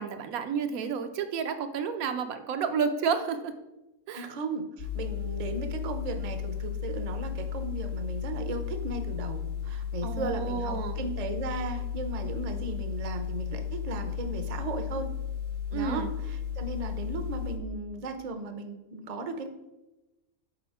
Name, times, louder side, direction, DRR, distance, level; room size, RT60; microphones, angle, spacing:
voice 1, 0.0-3.5 4.1-4.3 10.0-11.0 15.7-16.1, right 6 dB, 75° right, 8 dB, 1.1 m, -31 dB
voice 2, 4.1-15.1 15.7-19.5, right 3 dB, 40° right, 6 dB, 0.5 m, -36 dB
sound 1, 4.8-17.6, left 8 dB, 80° left, 1.9 m, -34 dB
6.9 x 4.2 x 4.8 m, 1.0 s
omnidirectional pair, 1.5 m